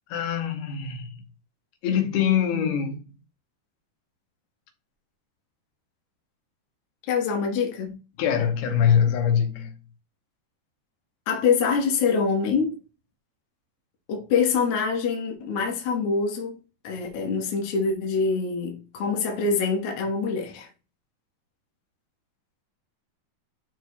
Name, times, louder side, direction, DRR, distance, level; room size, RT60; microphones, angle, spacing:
voice 1, 0.1-1.2 1.8-3.0 8.2-9.7, left 8 dB, 85° left, 3.0 m, -23 dB
voice 2, 7.1-8.0 11.3-12.8 14.1-16.6 16.8-20.7, left 5 dB, 55° left, 1.8 m, -25 dB
11.0 x 4.6 x 2.3 m
omnidirectional pair, 4.5 m